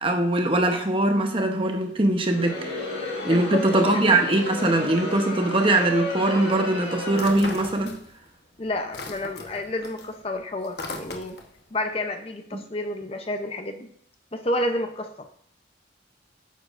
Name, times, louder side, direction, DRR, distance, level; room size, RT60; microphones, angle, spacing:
voice 1, 0.0-2.6 3.2-8.0, right 2 dB, 30° right, 4 dB, 0.9 m, -22 dB
Crowd, 2.2-7.9, left 1 dB, 85° left, 3.5 m, -33 dB
voice 2, 3.3-4.0 8.6-11.4 11.7-13.9 14.3-15.3, left 1 dB, 30° left, 6 dB, 0.6 m, -30 dB
sound 1, 7.1-8.4 8.7-11.6, left 2 dB, 60° left, 1.0 m, -38 dB
9.2 x 6.8 x 2.5 m, 0.64 s
head